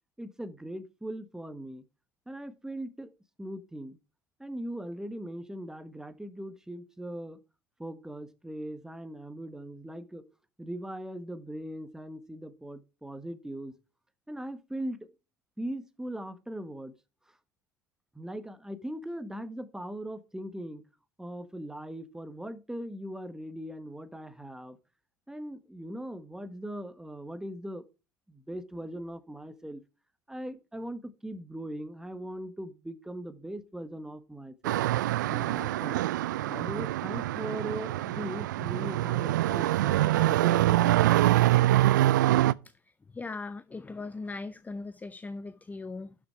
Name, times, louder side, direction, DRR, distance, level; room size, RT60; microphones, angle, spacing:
voice 1, 0.2-1.8 2.3-3.1 3.4-4.0 4.4-7.4 7.8-10.3 10.6-13.7 14.3-15.1 15.6-16.9 18.1-20.8 21.2-24.8 25.3-27.9 28.3-29.8 30.3-34.8 35.3-36.1 36.5-41.1, right 1 dB, 5° right, 1.4 m, -39 dB
sound 1, 34.6-42.5, right 15 dB, 75° right, 0.4 m, -25 dB
voice 2, 42.6-46.2, left 3 dB, 15° left, 0.6 m, -39 dB
12.0 x 6.0 x 4.6 m
figure-of-eight pair, 70°, 10 cm